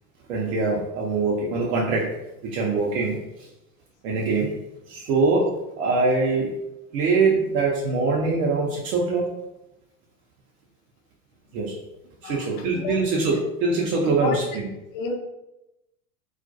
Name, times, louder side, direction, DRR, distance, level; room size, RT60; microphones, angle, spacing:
voice 1, 0.3-2.1 2.5-3.5 4.0-4.6 4.9-6.5 6.9-9.3 11.5-11.8 12.2-14.7, right 3 dB, 65° right, -3 dB, 0.7 m, -23 dB
voice 2, 12.2-13.0 14.1-14.4 14.9-15.2, left 5 dB, 45° left, 3 dB, 0.6 m, -31 dB
2.4 x 2.2 x 2.5 m, 0.93 s
hypercardioid pair, 85°, 46 cm